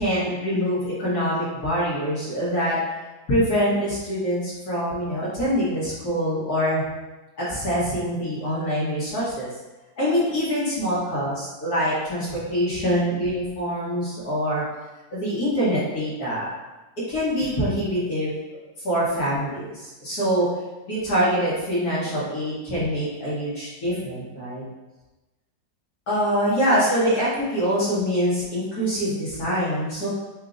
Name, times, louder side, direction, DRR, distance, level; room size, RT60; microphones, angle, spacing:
voice 1, 0.0-2.8 3.3-6.8 7.4-9.5 10.0-14.6 15.1-16.5 17.1-18.3 18.8-20.5 20.8-24.6 26.1-30.1, equal, 55° left, -8 dB, 1.6 m, -24 dB
5.8 x 2.6 x 2.5 m, 1.1 s
omnidirectional pair, 2.0 m